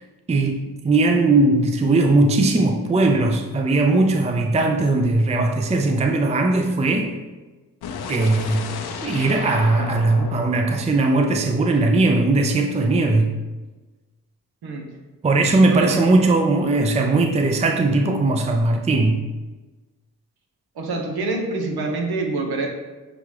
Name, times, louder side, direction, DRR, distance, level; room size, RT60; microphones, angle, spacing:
voice 1, 0.3-7.1 8.1-8.7 9.0-13.3 15.2-19.2, right 2 dB, 20° right, 3 dB, 0.4 m, -19 dB
sound 1, 7.8-11.8, left 6 dB, 80° left, 0.5 m, -34 dB
voice 2, 15.7-16.0 20.8-22.7, right 3 dB, 80° right, 2 dB, 0.9 m, -26 dB
6.7 x 2.4 x 3.2 m, 1.2 s
cardioid pair, 50°, 37 cm